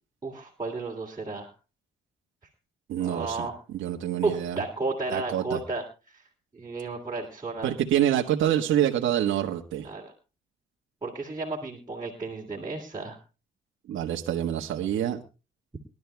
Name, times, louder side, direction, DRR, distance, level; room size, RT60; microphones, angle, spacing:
voice 1, 0.2-1.5 3.0-3.6 4.2-6.2 6.5-7.7 9.8-10.1 11.0-13.2, right 3 dB, 20° right, -4 dB, 3.0 m, -33 dB
voice 2, 2.9-3.4 3.7-4.6 5.1-5.6 7.6-9.9 13.9-15.2, right 11 dB, 80° right, 2 dB, 1.4 m, -26 dB
23.0 x 12.0 x 2.3 m, 0.32 s
cardioid pair, 90°, 20 cm